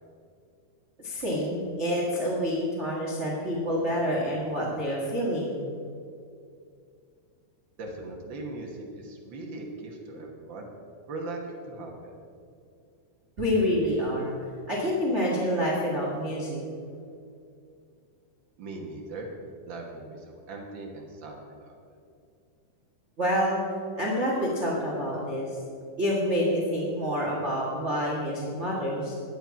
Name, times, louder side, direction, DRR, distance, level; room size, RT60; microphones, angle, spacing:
voice 1, 1.0-5.6 13.4-14.3 14.7-16.6 23.2-23.6 24.0-25.6 26.0-29.1, equal, 50° right, -3 dB, 0.8 m, -27 dB
voice 2, 7.8-10.7 11.1-12.1 18.6-19.3 19.6-21.8, right 2 dB, 75° right, 0 dB, 1.0 m, -39 dB
11.5 x 9.0 x 5.7 m, 2.4 s
omnidirectional pair, 4.2 m